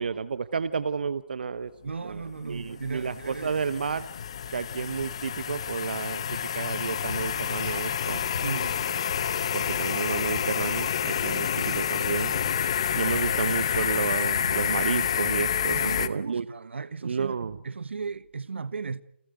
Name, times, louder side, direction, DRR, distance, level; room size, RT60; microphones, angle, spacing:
voice 1, 0.0-1.7 2.0-4.1 4.5-8.2 9.5-12.4 12.9-16.5 17.0-17.6, right 5 dB, 50° right, 0.9 m, -31 dB
voice 2, 1.8-3.5 8.4-8.8 11.2-11.6 15.7-17.4 17.6-19.0, right 4 dB, 70° right, 1.3 m, -36 dB
sound 1, 2.2-16.1, left 8 dB, 30° left, 0.8 m, -29 dB
sound 2, 7.1-15.1, left 4 dB, 75° left, 6.5 m, -40 dB
29.5 x 14.0 x 9.3 m
hypercardioid pair, 175°, 7 cm